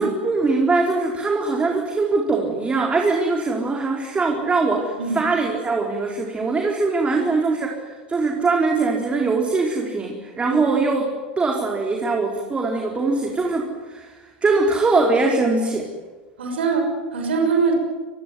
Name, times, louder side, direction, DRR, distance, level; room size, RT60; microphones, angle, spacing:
voice 1, 0.0-7.8 8.1-11.1 11.4-15.9, right 3 dB, 20° right, 1 dB, 4.6 m, -22 dB
voice 2, 7.0-7.3 10.4-10.6 16.4-17.7, right 5 dB, 80° right, 3 dB, 6.6 m, -23 dB
26.5 x 23.0 x 9.7 m, 1.3 s
hypercardioid pair, 90°, 6 cm